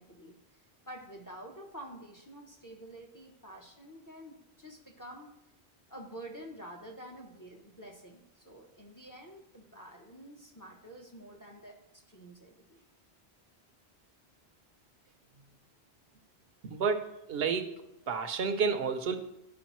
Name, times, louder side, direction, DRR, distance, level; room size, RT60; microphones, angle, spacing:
voice 1, 0.0-5.3 5.9-12.8, right 1 dB, 20° left, 1 dB, 0.7 m, -49 dB
voice 2, 16.6-17.8 18.1-19.2, right 5 dB, 70° right, 8 dB, 0.8 m, -30 dB
11.5 x 4.8 x 3.0 m, 0.87 s
omnidirectional pair, 1.1 m